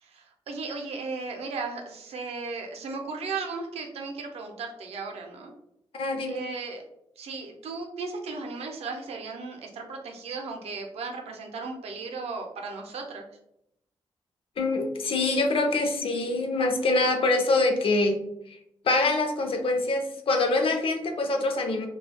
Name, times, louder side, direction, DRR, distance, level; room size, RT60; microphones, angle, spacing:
voice 1, 0.0-5.5 6.3-6.8 7.2-13.3, right 4 dB, 90° right, 3 dB, 0.5 m, -36 dB
voice 2, 5.9-6.4 14.6-18.2 18.8-21.9, left 2 dB, 65° left, 4 dB, 0.5 m, -25 dB
3.2 x 2.2 x 2.2 m, 0.78 s
cardioid pair, 65°, 10 cm